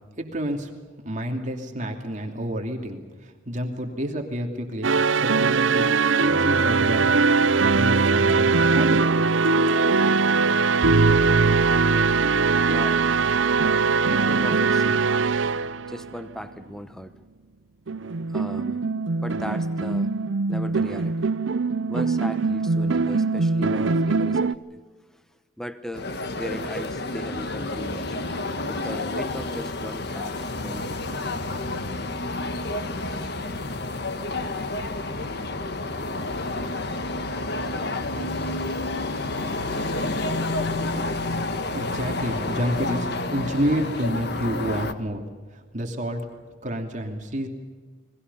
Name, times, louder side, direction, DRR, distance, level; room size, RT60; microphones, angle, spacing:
voice 1, 0.2-0.7 1.0-7.1 7.6-9.3 41.7-45.3 45.5-46.2 46.6-47.5, equal, 40° right, 3 dB, 2.8 m, -29 dB
sound 1, 4.8-16.4 17.9-24.6, right 4 dB, 75° right, 0.6 m, -21 dB
voice 2, 12.7-13.1 14.1-15.1 15.9-17.2 18.3-18.8 19.2-20.1 20.5-21.3 21.9-24.8 25.1-25.2 25.6-26.1 26.4-28.2 28.7-31.2, equal, 5° left, 10 dB, 0.9 m, -37 dB
sound 2, 25.9-44.9, left 2 dB, 60° left, 1.4 m, -29 dB
30.0 x 22.0 x 5.6 m, 1.4 s
head